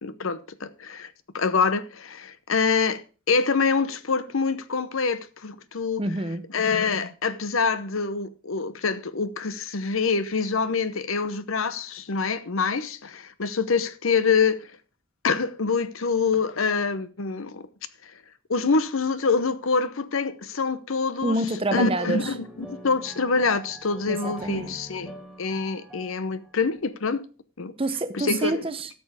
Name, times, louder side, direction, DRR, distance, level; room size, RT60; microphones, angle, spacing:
voice 1, 0.0-6.0 6.5-14.7 15.2-17.7 18.0-18.1 18.5-21.4 21.7-27.3 27.6-27.7 28.1-28.7, left 4 dB, 70° left, 0.8 m, -26 dB
voice 2, 6.0-6.4 21.2-22.2 24.1-24.8 27.8-28.9, right 2 dB, 25° right, 0.7 m, -27 dB
sound 1, 22.2-26.8, right 2 dB, ahead, 2.2 m, -44 dB
12.5 x 6.9 x 4.9 m
head